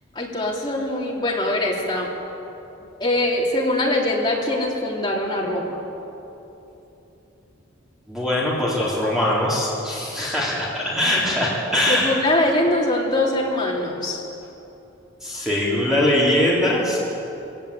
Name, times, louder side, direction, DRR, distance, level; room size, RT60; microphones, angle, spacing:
voice 1, 0.2-2.1 3.0-5.8 11.9-14.2, left 1 dB, 20° left, -4 dB, 3.6 m, -22 dB
voice 2, 8.1-12.1 13.3-13.4 15.2-17.0, left 1 dB, 5° right, -7 dB, 3.9 m, -22 dB
22.5 x 17.5 x 8.5 m, 3.0 s
head